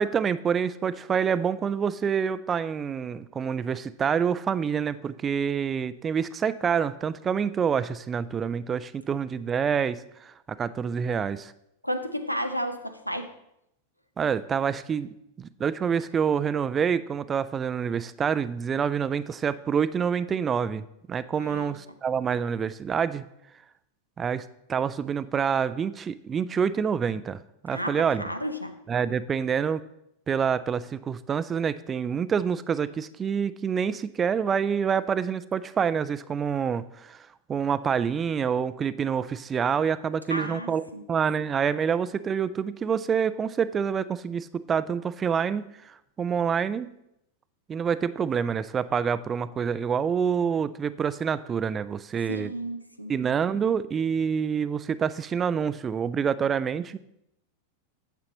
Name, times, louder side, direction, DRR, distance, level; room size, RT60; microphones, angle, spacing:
voice 1, 0.0-11.5 14.2-23.2 24.2-24.4 24.7-28.2 28.9-29.8 30.3-46.9 47.7-52.5 53.1-57.0, right 7 dB, 20° right, 16 dB, 0.3 m, -27 dB
voice 2, 11.8-13.3 21.4-21.7 27.7-28.7 40.3-41.0 52.3-53.1, equal, 90° left, 8 dB, 0.6 m, -32 dB
9.4 x 6.9 x 2.9 m, 0.79 s
figure-of-eight pair, 90°, 0 cm